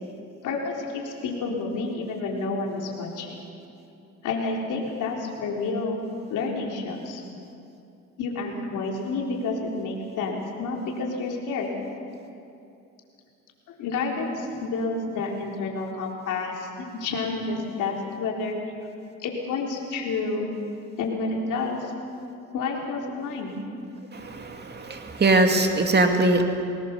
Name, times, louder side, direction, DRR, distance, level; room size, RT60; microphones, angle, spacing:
voice 1, 0.4-3.4 4.2-6.0 6.3-7.2 8.2-11.7 13.7-18.5 19.2-20.5 21.0-21.9 22.5-23.5, left 3 dB, 85° left, 0 dB, 3.9 m, -29 dB
voice 2, 24.2-26.4, right 2 dB, 35° right, 4 dB, 2.4 m, -21 dB
23.5 x 19.5 x 6.9 m, 2.6 s
cardioid pair, 90°, 30 cm